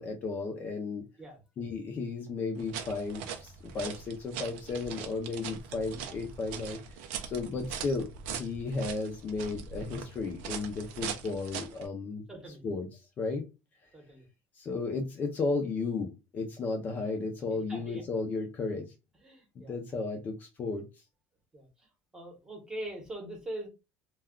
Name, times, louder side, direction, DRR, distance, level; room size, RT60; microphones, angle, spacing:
voice 1, 0.0-1.0 1.6-6.8 7.2-12.2 12.6-12.9 13.2-13.5 14.6-18.9 19.6-20.8, left 3 dB, 30° left, 2 dB, 0.5 m, -34 dB
sound 1, 2.6-11.9, right 7 dB, 85° right, 0.5 m, -41 dB
voice 2, 12.3-12.6 13.9-14.3 17.5-18.0 19.2-19.8 21.5-21.7 22.1-23.7, right 1 dB, 10° right, 2 dB, 0.9 m, -42 dB
2.3 x 2.2 x 3.5 m, 0.26 s
cardioid pair, 160°, 6 cm